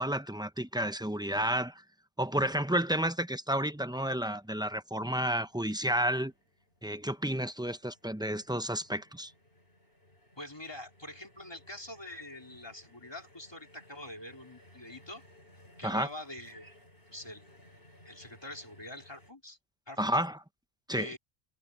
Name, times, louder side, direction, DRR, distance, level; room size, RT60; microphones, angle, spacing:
voice 1, 0.0-1.8 2.2-6.3 6.8-9.3 15.8-16.1 20.0-20.4 20.9-21.1, right 1 dB, 5° right, 0.6 m, -31 dB
sound 1, 5.0-19.3, left 1 dB, 70° left, 6.7 m, -60 dB
voice 2, 10.4-15.2 15.8-16.7 17.1-17.6 18.1-19.6 19.9-20.1 20.9-21.2, left 1 dB, 25° left, 3.5 m, -45 dB
omnidirectional pair, 1.0 m